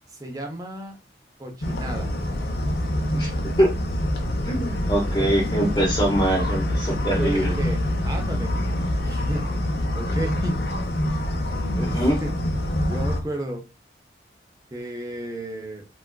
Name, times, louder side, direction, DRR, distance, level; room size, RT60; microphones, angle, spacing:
voice 1, 0.1-1.0 1.4-2.1 5.2-5.3 7.1-8.5 9.0-9.6 9.9-10.6 11.7-12.3 12.8-13.6 14.7-15.9, right 1 dB, 20° right, 2 dB, 0.7 m, -33 dB
sound 1, 1.6-13.2, left 1 dB, 60° left, 0.6 m, -26 dB
voice 2, 4.4-7.5 11.7-12.2, right 1 dB, 25° left, -5 dB, 0.8 m, -23 dB
3.3 x 2.4 x 2.2 m, 0.27 s
head